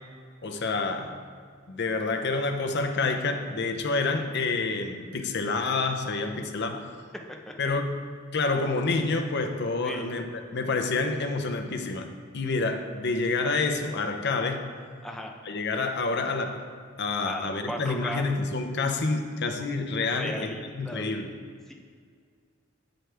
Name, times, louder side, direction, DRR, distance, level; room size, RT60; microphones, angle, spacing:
voice 1, 0.4-1.2 1.7-6.9 7.6-8.0 8.3-12.1 12.3-14.7 15.4-16.7 17.0-21.3, left 3 dB, 55° left, 5 dB, 0.7 m, -28 dB
voice 2, 15.0-15.3 17.2-18.2 20.1-21.0 21.7-21.8, equal, ahead, 1 dB, 0.7 m, -36 dB
7.9 x 7.8 x 3.4 m, 2.1 s
head